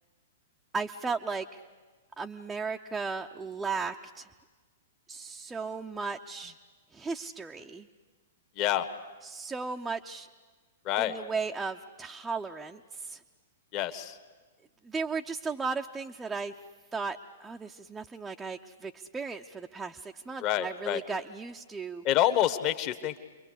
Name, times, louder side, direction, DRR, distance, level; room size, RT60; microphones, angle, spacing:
voice 1, 0.7-1.6 2.2-4.3 5.1-6.5 6.9-7.9 9.2-10.3 11.0-13.2 14.8-16.5 16.9-22.0, right 4 dB, 10° right, 2 dB, 0.8 m, -36 dB
voice 2, 8.6-8.9 10.8-11.1 13.7-14.2 20.4-21.0 22.0-23.2, left 12 dB, 35° left, 11 dB, 1.5 m, -27 dB
29.5 x 23.5 x 8.1 m, 1.4 s
figure-of-eight pair, 105°, 0 cm